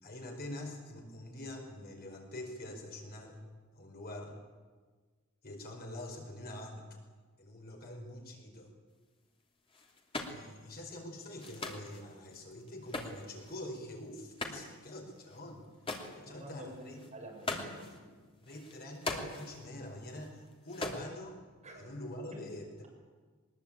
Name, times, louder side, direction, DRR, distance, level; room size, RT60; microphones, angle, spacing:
voice 1, 0.0-3.4 3.7-4.4 5.4-6.9 7.4-8.7 10.3-15.6 16.1-17.0 18.4-21.4 21.7-22.9, left 1 dB, 45° left, 2 dB, 4.6 m, -45 dB
sound 1, 9.7-10.5 11.4-13.6 14.2-14.9 15.2-15.4 15.6-16.2 16.6-18.0 18.4-19.7 20.0-21.0, left 2 dB, 25° left, 2.8 m, -41 dB
voice 2, 16.1-16.9 17.1-18.1 21.6-21.9 22.3-22.4, equal, 35° right, -1 dB, 6.7 m, -48 dB
22.0 x 20.5 x 8.8 m, 1.4 s
head